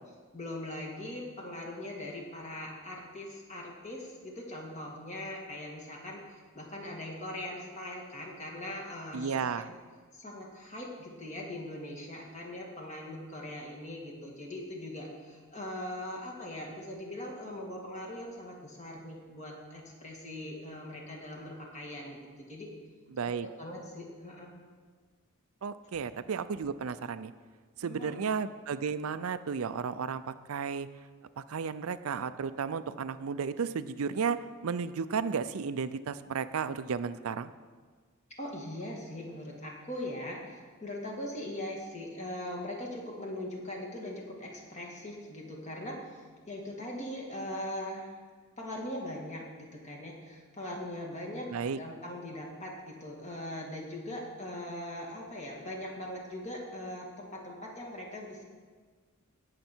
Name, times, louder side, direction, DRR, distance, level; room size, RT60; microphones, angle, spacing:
voice 1, 0.3-9.6 10.1-22.7 23.3-24.5 27.8-28.2 38.4-46.0 46.5-48.2 48.6-58.4, left 1 dB, 35° left, -1 dB, 2.1 m, -41 dB
voice 2, 9.1-9.7 23.1-23.5 25.6-27.3 27.8-30.9 31.4-37.5 51.5-51.8, right 6 dB, 85° right, 13 dB, 0.5 m, -33 dB
17.5 x 6.7 x 4.5 m, 1.5 s
head